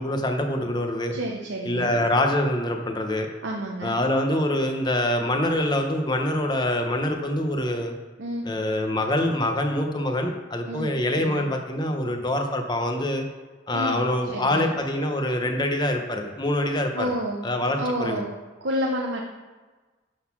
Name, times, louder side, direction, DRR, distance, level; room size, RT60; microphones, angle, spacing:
voice 1, 0.0-1.1 1.6-3.3 3.8-8.0 8.4-13.2 13.7-17.1 17.4-18.2, left 1 dB, 20° left, 3 dB, 0.9 m, -25 dB
voice 2, 1.1-2.0 3.4-4.0 8.2-8.5 10.7-10.9 11.2-11.5 13.7-14.0 14.3-14.7 16.9-17.4 17.8-18.3 18.6-19.2, equal, 70° right, 0 dB, 0.9 m, -29 dB
11.5 x 4.0 x 6.0 m, 1.3 s
head